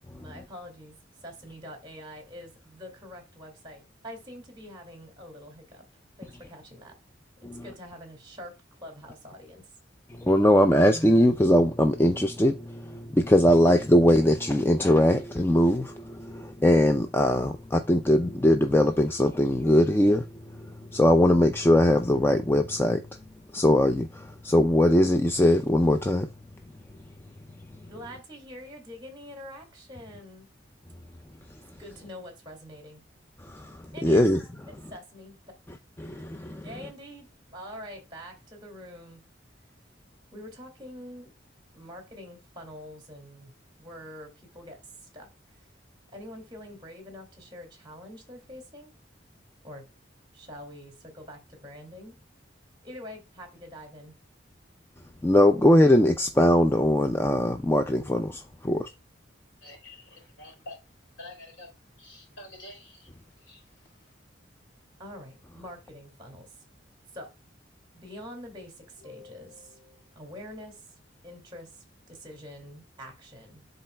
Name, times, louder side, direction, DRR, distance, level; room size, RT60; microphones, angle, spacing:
voice 1, 0.1-5.8 6.2-6.9 7.6-9.7 27.9-30.5 31.8-33.0 33.9-34.2 34.7-35.4 36.6-39.2 40.3-41.3 41.7-43.5 43.8-45.3 46.1-48.9 49.6-49.8 50.3-52.2 52.8-54.1 65.0-66.5 67.1-67.3 67.9-71.0 71.2-73.7, equal, 25° right, 2.3 m, -45 dB
voice 2, 10.2-20.3 20.5-23.0 23.5-26.3 33.5-34.4 36.0-36.6 55.2-58.9, left 1 dB, 10° left, 0.4 m, -21 dB
voice 3, 59.6-64.1, left 1 dB, 85° left, 3.2 m, -48 dB
11.5 x 3.9 x 2.2 m
head